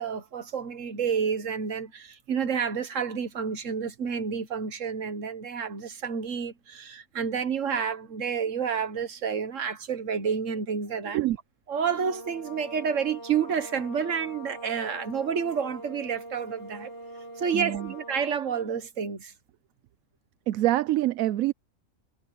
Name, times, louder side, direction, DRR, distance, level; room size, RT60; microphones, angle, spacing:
voice 1, 0.0-11.2 11.7-16.9 17.4-19.3, right 6 dB, 65° right, 1.6 m, -29 dB
sound 1, 11.9-18.5, right 1 dB, 55° left, 2.8 m, -43 dB
voice 2, 17.5-17.9 20.5-21.5, right 15 dB, 90° right, 1.0 m, -25 dB
omnidirectional pair, 1.4 m